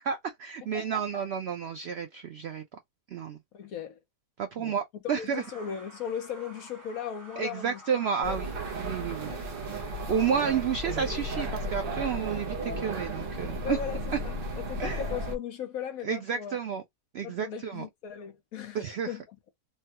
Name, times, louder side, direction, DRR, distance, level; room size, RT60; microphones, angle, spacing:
voice 1, 0.0-2.6 3.1-3.4 4.4-5.4 7.4-9.3 10.1-13.8 14.8-15.0 16.0-16.8 17.1-17.9 18.7-19.1, right 7 dB, 85° right, 0.5 m, -31 dB
voice 2, 0.7-1.2 3.5-4.0 4.6-4.7 5.0-7.8 8.2-8.5 9.2-9.5 13.6-16.6 17.2-19.2, left 8 dB, 65° left, 1.2 m, -38 dB
sound 1, 5.3-12.2, right 1 dB, 15° right, 1.0 m, -50 dB
sound 2, 8.2-15.4, right 1 dB, 45° right, 0.7 m, -34 dB
3.3 x 2.2 x 2.8 m
omnidirectional pair, 1.7 m